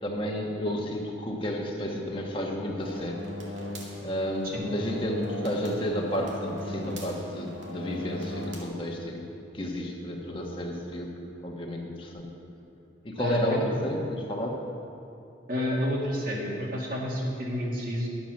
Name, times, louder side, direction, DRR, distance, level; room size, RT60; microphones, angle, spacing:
voice 1, 0.0-3.2 4.0-9.2 9.5-11.1 11.4-12.3 13.0-14.6, equal, 25° left, 0 dB, 1.3 m, -31 dB
sound 1, 2.8-8.6, left 1 dB, 80° right, 1.9 m, -38 dB
voice 2, 13.2-13.6 15.5-18.1, equal, 50° right, -3 dB, 2.1 m, -30 dB
12.0 x 7.4 x 6.4 m, 2.8 s
head